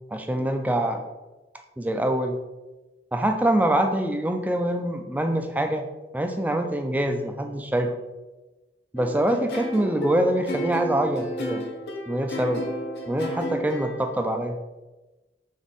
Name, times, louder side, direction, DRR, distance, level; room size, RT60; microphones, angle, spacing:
voice 1, 0.1-1.0 1.8-2.4 3.1-5.8 6.1-7.9 8.9-11.6 12.1-12.7 13.1-14.6, right 1 dB, 10° right, 5 dB, 0.3 m, -24 dB
sound 1, 9.0-14.1, equal, 70° left, 0.8 m, -32 dB
3.5 x 3.4 x 4.1 m, 1.1 s
head